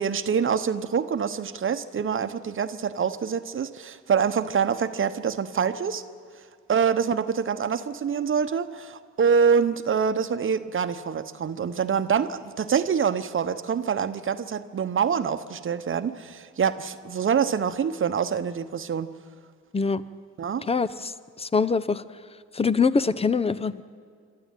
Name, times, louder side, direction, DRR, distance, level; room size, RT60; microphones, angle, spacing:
voice 1, 0.0-6.0 6.7-19.1 20.4-20.6, right 6 dB, 45° right, 10 dB, 1.0 m, -25 dB
voice 2, 20.7-22.0 22.5-23.8, left 5 dB, 20° left, 16 dB, 0.7 m, -24 dB
25.5 x 13.0 x 9.1 m, 2.1 s
cardioid pair, 90°, 30 cm